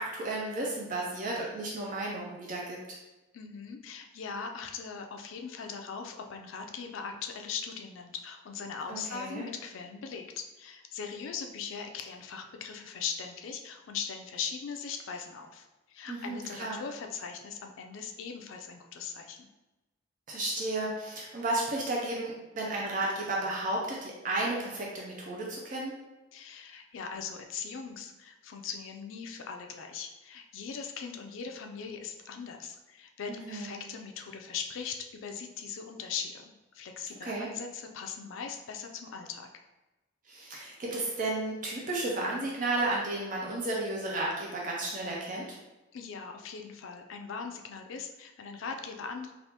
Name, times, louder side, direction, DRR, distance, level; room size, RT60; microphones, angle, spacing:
voice 1, 0.0-3.0 8.9-9.5 16.1-16.8 20.3-25.9 33.3-33.8 37.2-37.5 40.3-45.6, right 2 dB, 40° right, -3 dB, 0.4 m, -33 dB
voice 2, 3.3-19.5 26.3-39.5 45.9-49.3, left 6 dB, 75° left, 4 dB, 0.4 m, -40 dB
3.4 x 2.4 x 2.8 m, 1.1 s
head